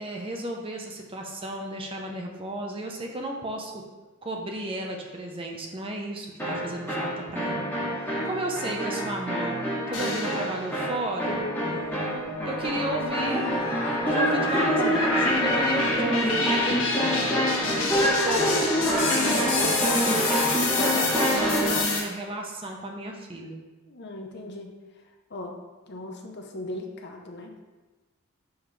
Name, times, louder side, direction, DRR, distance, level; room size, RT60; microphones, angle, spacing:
voice 1, 0.0-3.8 4.2-7.7 8.0-9.6 9.9-11.4 11.9-12.1 12.4-13.5 14.0-16.9 17.8-23.6, right 1 dB, 25° right, 1 dB, 0.7 m, -34 dB
sound 1, 6.4-21.9, equal, 10° left, 1.9 m, -26 dB
sound 2, 9.9-10.8 11.3-22.0, left 3 dB, 65° left, 1.4 m, -29 dB
voice 2, 17.6-18.1 23.9-24.8 25.3-25.6 25.9-27.5, left 1 dB, 50° left, 3 dB, 0.8 m, -38 dB
7.1 x 5.3 x 3.3 m, 1.2 s
head